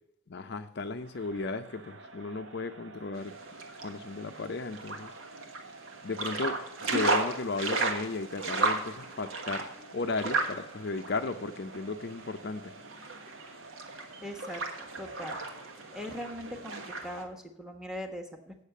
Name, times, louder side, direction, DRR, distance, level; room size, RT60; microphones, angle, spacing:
voice 1, 0.3-3.3 3.8-5.1 6.0-6.6 6.9-9.6 9.9-12.7, left 3 dB, 55° left, 0.5 m, -35 dB
Crowd, 0.9-17.1, right 3 dB, 60° right, 1.1 m, -51 dB
sound 1, 3.2-17.2, right 3 dB, 80° right, 1.6 m, -35 dB
voice 2, 14.2-15.4 15.9-18.6, equal, 5° right, 1.1 m, -40 dB
8.3 x 6.6 x 8.1 m
head